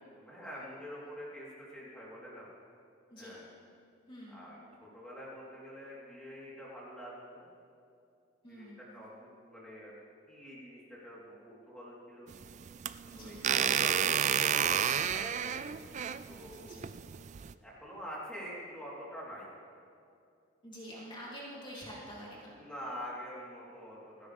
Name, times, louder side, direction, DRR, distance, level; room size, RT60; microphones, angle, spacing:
voice 1, 0.1-2.5 3.2-3.5 4.3-7.5 8.5-9.9 10.3-12.3 13.2-15.6 16.3-16.9 17.6-19.5 22.5-24.3, equal, 5° left, -7 dB, 3.8 m, -46 dB
voice 2, 4.1-4.5 8.4-8.9 13.1-13.5 16.6-16.9 20.6-22.5, equal, 25° left, -7 dB, 3.4 m, -47 dB
sound 1, 12.3-17.5, right 8 dB, 35° right, 0.3 m, -31 dB
29.0 x 10.0 x 3.6 m, 2.5 s
head